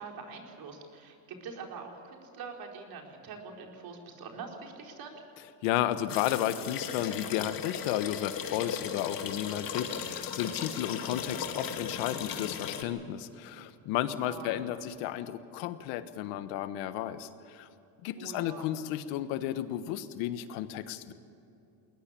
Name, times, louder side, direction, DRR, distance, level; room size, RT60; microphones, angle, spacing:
voice 1, 0.0-5.2 14.2-14.6 18.2-18.7, right 5 dB, 50° right, 1 dB, 4.6 m, -44 dB
voice 2, 5.6-17.7 18.0-21.1, left 12 dB, 85° left, 11 dB, 1.5 m, -33 dB
sound 1, 6.1-12.8, left 7 dB, 50° left, 2.4 m, -37 dB
21.0 x 19.5 x 8.5 m, 2.8 s
cardioid pair, 120°, 44 cm